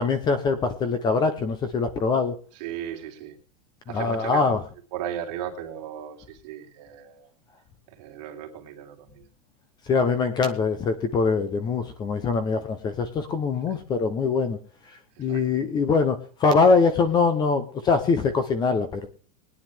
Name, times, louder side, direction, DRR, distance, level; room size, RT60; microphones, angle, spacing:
voice 1, 0.0-2.4 3.9-4.6 9.9-14.6 15.2-19.1, left 4 dB, 20° left, 11 dB, 0.9 m, -23 dB
voice 2, 2.6-3.4 3.9-4.6 4.9-7.3 7.9-9.3 15.2-15.4, right 10 dB, 50° right, 2 dB, 2.7 m, -36 dB
20.5 x 9.7 x 3.6 m, 0.37 s
supercardioid pair, 155°, 21 cm